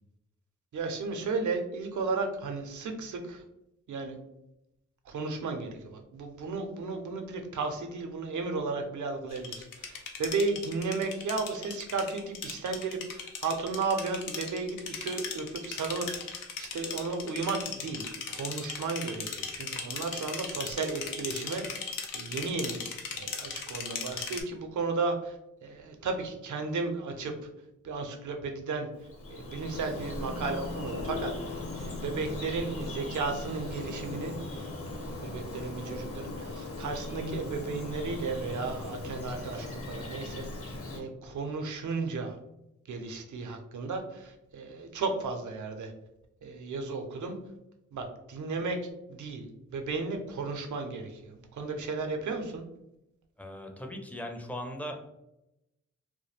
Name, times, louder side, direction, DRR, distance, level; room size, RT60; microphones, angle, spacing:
voice 1, 0.7-3.4 3.9-4.2 5.1-27.3 27.8-28.9 29.3-34.7 34.9-42.4 42.9-45.9 46.4-47.4 47.9-52.6, right 4 dB, 65° right, 4 dB, 0.6 m, -34 dB
sound 1, 9.3-24.4, left 6 dB, 85° left, 0.5 m, -38 dB
Bird vocalization bird call bird song, 28.9-41.0, left 2 dB, 45° left, 0.8 m, -38 dB
voice 2, 53.4-55.0, equal, 5° left, 3 dB, 0.5 m, -38 dB
2.2 x 2.0 x 3.1 m, 0.87 s
supercardioid pair, 45°, 31 cm